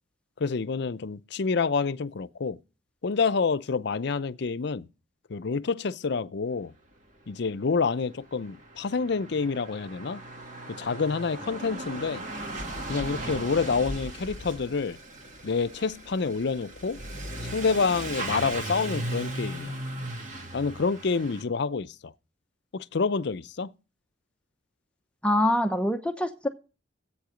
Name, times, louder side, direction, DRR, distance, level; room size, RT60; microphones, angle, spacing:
voice 1, 0.4-2.6 3.0-4.9 5.3-6.7 7.3-10.2 10.7-12.2 12.9-15.0 15.4-17.0 17.4-19.8 20.5-22.1 22.7-23.7, left 4 dB, 60° left, 0.6 m, -28 dB
Truck / Accelerating revving vroom, 7.8-7.9 8.0-21.4, right 1 dB, 45° right, 2.5 m, -37 dB
voice 2, 25.2-26.5, left 1 dB, 5° left, 0.8 m, -24 dB
13.5 x 8.6 x 5.0 m
head